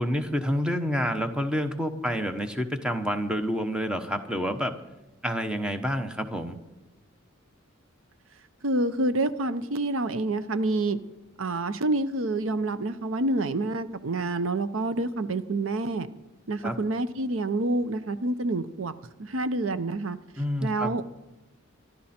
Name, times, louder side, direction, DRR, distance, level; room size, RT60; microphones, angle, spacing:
voice 1, 0.0-4.7 5.2-6.6 16.6-16.8 20.4-20.9, equal, 5° right, 6 dB, 1.1 m, -28 dB
voice 2, 8.6-11.0 11.4-16.1 16.5-18.9 19.2-20.2 20.6-21.2, right 2 dB, 80° right, 13 dB, 0.8 m, -27 dB
25.5 x 12.0 x 4.4 m, 1.0 s
head